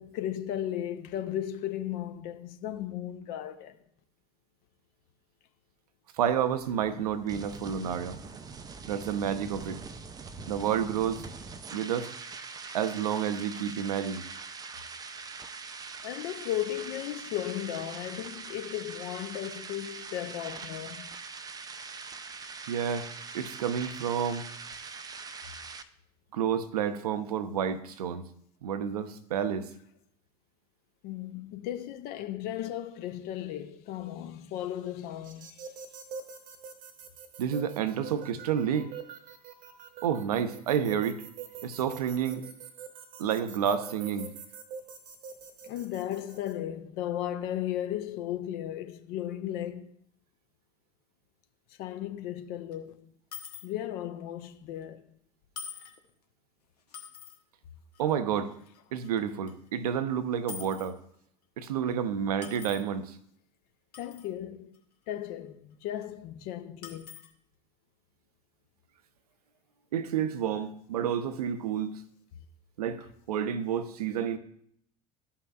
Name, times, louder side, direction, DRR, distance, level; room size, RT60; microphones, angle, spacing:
voice 1, 0.0-3.8 16.0-21.1 31.0-35.7 45.6-49.9 51.8-53.1 53.6-55.0 64.0-64.8 65.1-67.1, left 12 dB, 50° left, 0.7 m, -35 dB
sound 1, 6.2-25.8, right 4 dB, 20° right, 0.5 m, -43 dB
voice 2, 6.2-8.2 8.9-9.8 10.5-11.3 11.7-12.1 12.7-14.3 22.7-23.1 23.3-24.5 26.3-28.3 28.6-29.7 37.4-38.9 40.0-41.2 41.6-42.4 43.2-44.3 58.0-58.5 58.9-61.0 61.6-63.2 69.9-71.9 72.8-74.4, right 8 dB, 65° right, 0.7 m, -30 dB
sound 2, 35.2-46.5, right 7 dB, 45° right, 1.0 m, -45 dB
sound 3, 52.7-52.8 53.3-53.7 54.8-54.9 55.6-56.0 56.9-57.4 57.9-58.1 58.7-59.2 59.5-59.6 59.9-60.0 60.5-60.9 61.6-61.7 62.4-62.8 63.9-64.3 64.7-64.8 66.0-66.1 66.8-67.3, left 7 dB, 75° left, 1.1 m, -44 dB
13.0 x 5.6 x 2.3 m
figure-of-eight pair, 70°, 21 cm